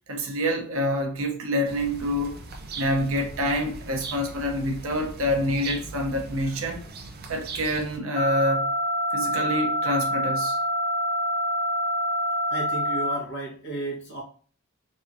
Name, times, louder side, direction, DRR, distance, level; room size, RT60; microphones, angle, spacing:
voice 1, 0.1-2.3 2.7-6.8 7.3-8.8 9.1-10.6, equal, 70° right, 0.8 m, -27 dB
sound 1, 1.7-8.0, right 3 dB, 45° right, 0.5 m, -39 dB
sound 2, 8.2-13.2, equal, 20° left, 0.4 m, -26 dB
voice 2, 12.5-14.2, right 1 dB, 50° left, 1.3 m, -33 dB
3.2 x 2.8 x 2.6 m
head